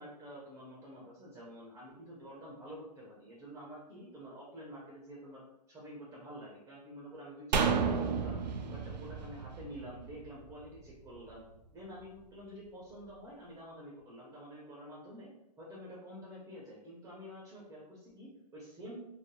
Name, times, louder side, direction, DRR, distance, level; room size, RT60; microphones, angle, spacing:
voice 1, 0.0-8.4 8.7-11.4 11.7-15.3 15.6-19.0, equal, 15° right, -5 dB, 0.7 m, -48 dB
sound 1, 7.5-10.9 11.2-11.3, right 5 dB, 90° right, 0.4 m, -32 dB
3.2 x 2.2 x 2.2 m, 0.86 s
hypercardioid pair, 130°, 21 cm